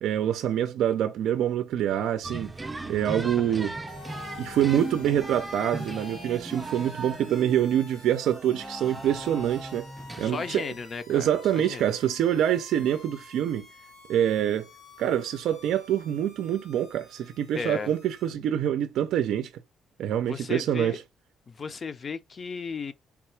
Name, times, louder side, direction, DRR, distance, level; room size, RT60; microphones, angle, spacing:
voice 1, 0.0-2.5 2.9-3.8 4.4-9.9 10.2-10.7 11.1-13.7 14.1-14.7 15.0-19.5 20.0-21.0, right 10 dB, 80° right, 0.4 m, -26 dB
sound 1, 2.2-10.8, right 2 dB, 20° right, 0.5 m, -38 dB
voice 2, 3.1-3.6 10.2-11.8 17.6-17.9 20.3-21.0 21.5-22.9, left 5 dB, 40° left, 0.5 m, -35 dB
sound 2, 3.9-18.3, left 4 dB, 75° left, 2.0 m, -49 dB
3.5 x 2.3 x 4.4 m
cardioid pair, 90°, 0 cm